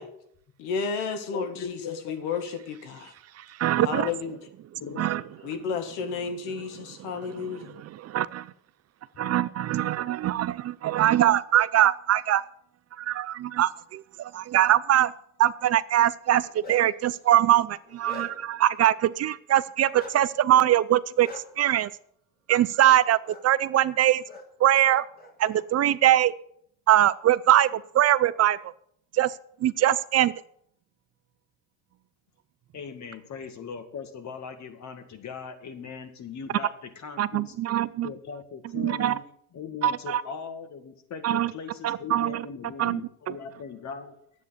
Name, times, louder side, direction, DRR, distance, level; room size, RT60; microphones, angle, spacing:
voice 1, 0.6-1.8 2.1-3.1 3.8-4.4 5.4-7.8, left 5 dB, 90° left, 7 dB, 1.8 m, -32 dB
voice 2, 1.3-2.2 4.8-5.7 7.2-7.8 9.1-9.3 32.7-37.5 38.0-39.2 39.5-44.2, left 6 dB, 45° left, 8 dB, 2.0 m, -40 dB
voice 3, 3.4-4.1 5.0-5.2 7.5-8.5 9.2-12.4 13.0-15.1 15.4-21.3 21.6-21.9 22.5-24.2 24.6-25.0 25.4-26.3 26.9-28.6 29.1-29.3 29.6-30.3 37.2-38.1 38.7-39.1 39.8-40.2 41.2-41.5 41.8-42.5 42.8-43.0, right 12 dB, 40° right, 16 dB, 0.5 m, -22 dB
Bark, 16.3-17.1 17.6-18.6 19.9-20.2 21.2-21.4 22.8-23.0 23.2-23.4 24.3-24.4 24.8-25.6, left 2 dB, 25° left, 2.5 m, -43 dB
10.5 x 8.3 x 6.5 m, 0.68 s
supercardioid pair, 100°, 38 cm